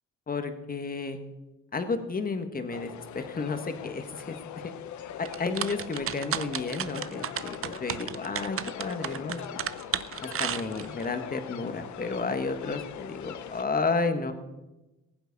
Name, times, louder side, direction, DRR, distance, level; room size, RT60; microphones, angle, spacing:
voice 1, 0.3-1.2 1.7-4.4 4.6-4.7 5.2-9.6 10.2-14.3, left 4 dB, 30° left, 8 dB, 1.5 m, -32 dB
sound 1, 2.7-13.6, left 10 dB, 70° left, 0.8 m, -41 dB
sound 2, 5.2-11.1, right 9 dB, 45° right, 0.7 m, -33 dB
19.0 x 8.0 x 5.4 m, 1.0 s
cardioid pair, 90°, 30 cm